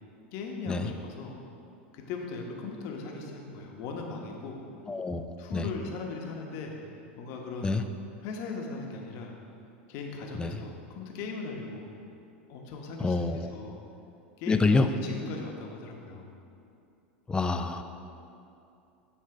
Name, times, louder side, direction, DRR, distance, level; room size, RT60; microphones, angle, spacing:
voice 1, 0.3-1.4 1.9-4.6 5.4-6.8 7.2-7.8 8.2-9.4 9.9-11.9 12.5-13.8 14.4-16.3, left 4 dB, 55° left, 1 dB, 1.0 m, -39 dB
voice 2, 4.9-5.7 7.6-7.8 10.4-10.6 13.0-13.5 14.5-14.9 17.3-17.8, left 3 dB, 15° left, 8 dB, 0.4 m, -27 dB
9.5 x 3.2 x 4.8 m, 2.6 s
hypercardioid pair, 90°, 6 cm